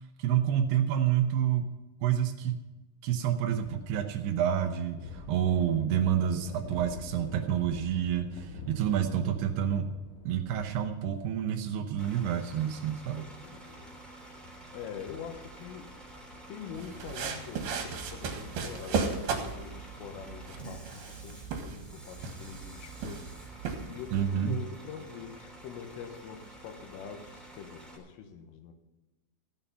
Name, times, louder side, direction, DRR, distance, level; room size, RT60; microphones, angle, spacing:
voice 1, 0.2-1.7 2.0-2.6 3.0-9.9 10.3-13.3 24.1-24.6, right 9 dB, 80° right, 6 dB, 2.3 m, -28 dB
sound 1, 3.6-19.4, left 3 dB, 60° left, 2.3 m, -48 dB
voice 2, 5.6-6.1 8.5-8.6 13.2-14.0 14.3-15.9 16.2-28.7, left 7 dB, 85° left, 6 dB, 3.8 m, -45 dB
Bus / Idling, 12.0-28.0, right 1 dB, ahead, 1.6 m, -49 dB
sound 2, 16.8-24.2, right 5 dB, 60° right, 3.1 m, -36 dB
15.0 x 9.7 x 5.5 m, 1.1 s
omnidirectional pair, 5.7 m